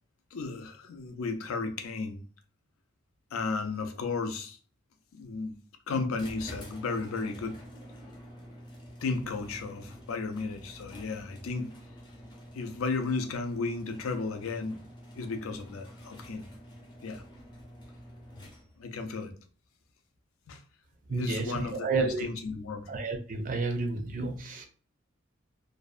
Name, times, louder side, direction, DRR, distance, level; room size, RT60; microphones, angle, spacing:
voice 1, 0.3-2.2 3.3-4.6 5.1-5.6 5.9-7.6 9.0-11.7 12.5-14.8 15.1-16.5 17.0-17.2 18.8-19.3 20.5-20.6 21.1-22.9, left 4 dB, 85° left, 0.5 m, -34 dB
sound 1, 6.1-18.9, equal, 20° left, 0.5 m, -48 dB
voice 2, 21.1-22.3 22.9-24.7, right 3 dB, 40° right, 0.4 m, -31 dB
2.5 x 2.1 x 2.3 m
head